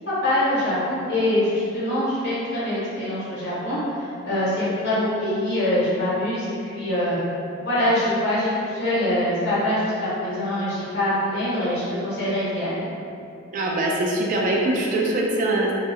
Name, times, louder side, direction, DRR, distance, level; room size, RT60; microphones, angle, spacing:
voice 1, 0.0-7.2 7.6-12.8, left 1 dB, 55° left, -10 dB, 0.9 m, -24 dB
voice 2, 13.5-15.7, right 1 dB, 40° right, -2 dB, 0.3 m, -22 dB
2.3 x 2.1 x 2.6 m, 2.5 s
head